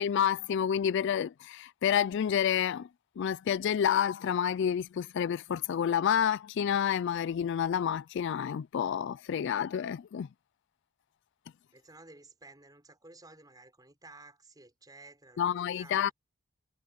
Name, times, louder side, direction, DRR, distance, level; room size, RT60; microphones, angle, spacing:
voice 1, 0.0-2.9 3.2-10.3 15.4-16.1, left 8 dB, 55° left, 0.3 m, -29 dB
voice 2, 11.7-16.1, right 2 dB, 20° right, 5.6 m, -54 dB
head